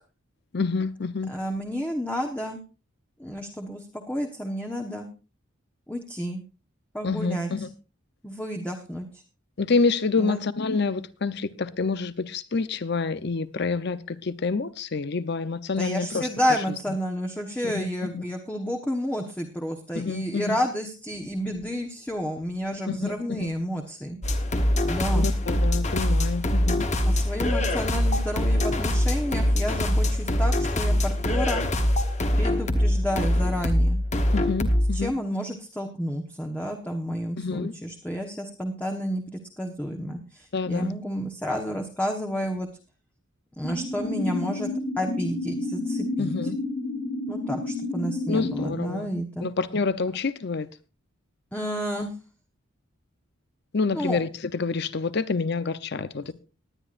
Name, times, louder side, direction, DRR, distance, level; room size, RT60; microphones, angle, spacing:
voice 1, 0.5-1.3 7.0-7.7 9.6-16.3 17.6-18.2 19.9-20.6 22.9-23.5 25.2-26.9 34.3-35.1 37.4-37.7 40.5-40.9 46.2-46.6 48.3-49.1 49.4-50.7 53.7-56.3, left 4 dB, 50° left, 0.7 m, -28 dB
voice 2, 1.3-2.6 3.2-5.1 5.9-6.4 6.9-7.5 8.2-9.1 10.2-10.4 15.8-24.2 24.9-25.3 27.0-31.6 32.3-34.0 34.9-42.7 43.6-44.7 45.0-46.3 47.3-49.5 51.5-52.1 53.9-54.2, equal, 5° left, 1.1 m, -30 dB
sound 1, 24.2-35.1, left 1 dB, 35° left, 1.2 m, -23 dB
sound 2, 43.6-48.6, left 2 dB, 65° left, 6.9 m, -30 dB
20.0 x 10.0 x 2.5 m
head